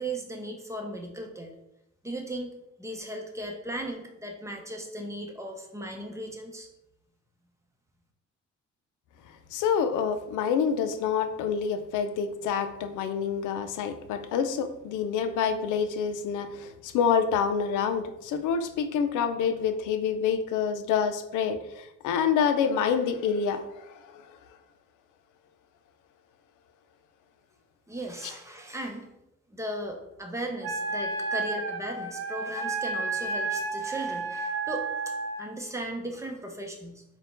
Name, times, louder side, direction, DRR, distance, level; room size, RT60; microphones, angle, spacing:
voice 1, 0.0-1.5 2.0-2.5 2.8-6.7 27.9-29.1 29.5-34.9 35.4-37.0, right 1 dB, 10° right, 2 dB, 0.7 m, -37 dB
voice 2, 9.5-24.2, left 7 dB, 90° left, 9 dB, 0.5 m, -27 dB
Wind instrument woodwind instrument, 30.6-35.5, right 3 dB, 50° right, 0.9 m, -31 dB
4.3 x 2.3 x 3.7 m, 0.88 s
cardioid pair, 90°, 30 cm